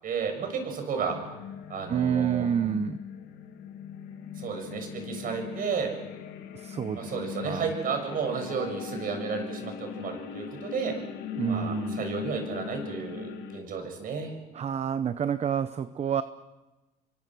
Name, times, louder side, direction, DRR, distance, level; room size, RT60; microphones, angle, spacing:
voice 1, 0.0-1.2 1.7-2.5 4.4-5.9 6.9-10.9 11.5-14.3, right 6 dB, 55° right, 5 dB, 6.9 m, -32 dB
sound 1, 1.1-13.6, left 7 dB, 80° left, 2.1 m, -39 dB
voice 2, 1.9-3.0 6.5-7.1 7.4-7.6 11.4-12.0 14.5-16.2, right 8 dB, 40° right, 12 dB, 0.9 m, -28 dB
29.5 x 23.5 x 6.3 m, 1.1 s
cardioid pair, 110°, 17 cm